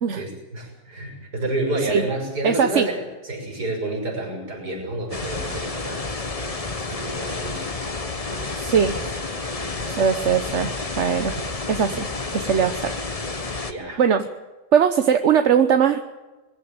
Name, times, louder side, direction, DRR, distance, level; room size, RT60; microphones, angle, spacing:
voice 1, 0.1-6.1 6.4-8.6 9.4-9.5 13.7-14.0, right 2 dB, 80° right, 0 dB, 6.7 m, -30 dB
voice 2, 2.4-2.9 8.6-9.0 9.9-11.3 11.7-12.9 14.0-14.2 14.7-16.0, right 7 dB, 50° right, 8 dB, 1.1 m, -20 dB
sound 1, 5.1-13.7, left 3 dB, 25° left, 1.2 m, -30 dB
22.0 x 15.0 x 9.0 m, 1.2 s
omnidirectional pair, 1.7 m